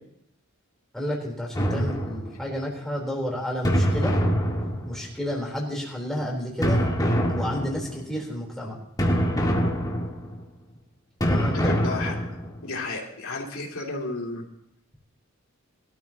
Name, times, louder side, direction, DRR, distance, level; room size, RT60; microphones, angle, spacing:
voice 1, 0.9-4.1 4.8-6.9 7.3-8.8 11.3-11.7, equal, ahead, -3 dB, 3.8 m, -31 dB
sound 1, 1.5-2.6 3.6-5.2 6.6-8.0 9.0-10.4 11.2-12.6, equal, 20° left, 2.0 m, -25 dB
voice 2, 11.5-12.1 12.6-14.5, left 2 dB, 75° left, 0 dB, 2.9 m, -32 dB
22.5 x 13.0 x 3.0 m, 0.74 s
head